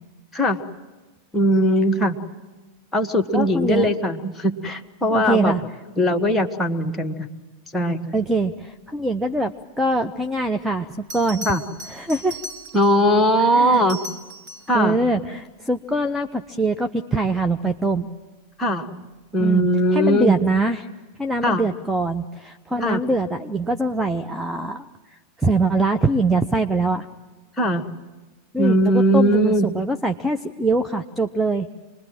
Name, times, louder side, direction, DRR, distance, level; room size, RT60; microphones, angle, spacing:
voice 1, 1.3-2.2 2.9-5.5 6.0-7.3 7.7-8.1 11.5-11.6 12.7-14.0 14.7-15.0 18.6-19.1 19.3-20.5 21.4-21.7 22.8-23.0 27.6-27.9 28.6-29.7, equal, 10° left, 4 dB, 1.6 m, -20 dB
voice 2, 3.3-3.9 5.1-5.6 8.1-10.9 11.1-11.5 11.9-12.4 13.5-13.8 14.7-18.1 19.4-20.9 21.2-24.9 25.4-27.1 28.5-31.7, right 2 dB, 5° right, 5 dB, 0.8 m, -23 dB
Bell, 11.1-13.0 13.7-14.8 17.5-17.7, right 1 dB, 45° right, 5.2 m, -37 dB
27.0 x 21.0 x 7.6 m, 1.3 s
figure-of-eight pair, 90°, 0 cm